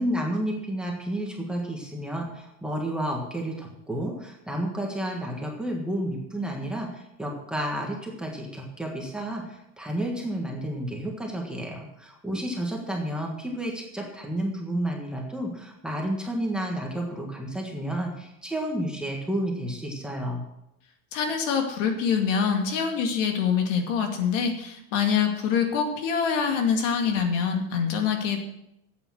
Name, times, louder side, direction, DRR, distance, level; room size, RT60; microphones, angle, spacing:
voice 1, 0.0-20.4, right 1 dB, ahead, -1 dB, 1.5 m, -31 dB
voice 2, 21.1-28.4, left 6 dB, 70° left, 4 dB, 2.5 m, -25 dB
12.5 x 8.5 x 6.3 m, 0.84 s
cardioid pair, 175°, 38 cm